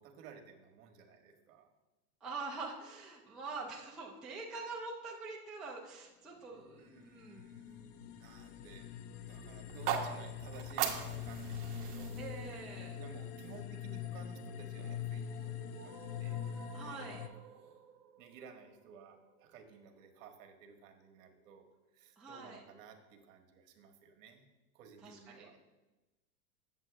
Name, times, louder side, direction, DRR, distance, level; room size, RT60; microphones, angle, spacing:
voice 1, 0.0-1.7 6.8-8.9 9.2-12.2 13.0-15.9 16.2-16.4 16.8-17.8 18.2-21.7 21.9-24.5 24.7-25.6, right 6 dB, 60° right, 5 dB, 1.3 m, -56 dB
voice 2, 2.2-7.5 12.2-13.0 16.7-17.2 22.2-22.6 25.0-25.5, right 3 dB, ahead, -4 dB, 0.4 m, -45 dB
sound 1, 6.6-17.3, left 8 dB, 85° left, 0.6 m, -43 dB
sound 2, 9.6-13.8, right 9 dB, 45° right, 1.1 m, -40 dB
sound 3, 14.5-20.5, right 5 dB, 25° right, 1.2 m, -57 dB
7.4 x 7.3 x 3.3 m, 1.1 s
supercardioid pair, 135°, 45 cm